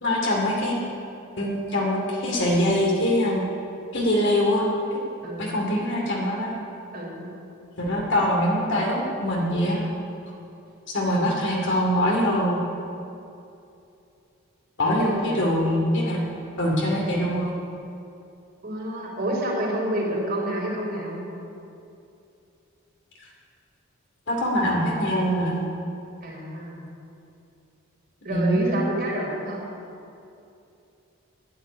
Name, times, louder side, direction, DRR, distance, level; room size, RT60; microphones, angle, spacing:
voice 1, 0.0-0.8 1.4-3.4 3.9-4.6 4.9-5.0 5.4-6.5 7.8-9.8 10.9-12.6 14.8-16.3 16.6-17.5 24.3-25.6 28.3-28.8, equal, 60° left, -2 dB, 2.5 m, -23 dB
voice 2, 6.9-7.3 15.0-15.6 18.6-21.2 26.2-26.9 28.2-29.6, right 1 dB, 45° right, -2 dB, 3.9 m, -29 dB
11.0 x 9.7 x 10.0 m, 2.7 s
head